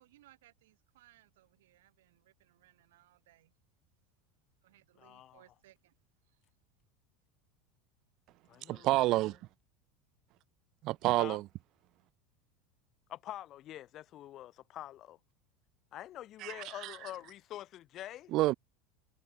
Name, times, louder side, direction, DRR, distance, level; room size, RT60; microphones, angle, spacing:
voice 1, 0.0-3.5 4.6-6.0 6.2-6.4, right 16 dB, 90° right, 5.7 m, -64 dB
voice 2, 5.0-5.4 8.5-9.3 11.2-11.4 13.1-15.2 15.9-18.3, left 13 dB, 40° left, 1.6 m, -46 dB
voice 3, 8.7-9.4 10.8-11.4 16.4-16.5 16.8-16.9 18.3-18.5, right 18 dB, 50° right, 0.3 m, -28 dB
supercardioid pair, 130°, 0 cm